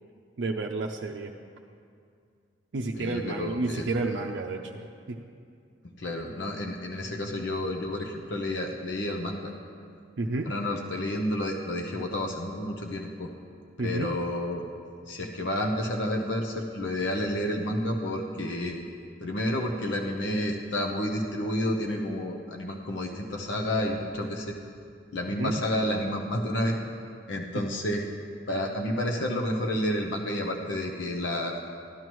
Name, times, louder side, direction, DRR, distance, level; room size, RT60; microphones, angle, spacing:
voice 1, 0.4-1.3 2.7-5.2 10.2-10.5 13.8-14.1 25.4-25.6, right 2 dB, 75° right, 1 dB, 0.5 m, -31 dB
voice 2, 3.0-3.8 5.8-9.5 10.4-13.3 13.8-14.7 15.1-18.8 19.2-24.6 25.1-26.8 27.3-28.0 28.5-31.6, left 1 dB, 80° left, 0 dB, 0.8 m, -30 dB
13.0 x 11.0 x 3.1 m, 2.3 s
head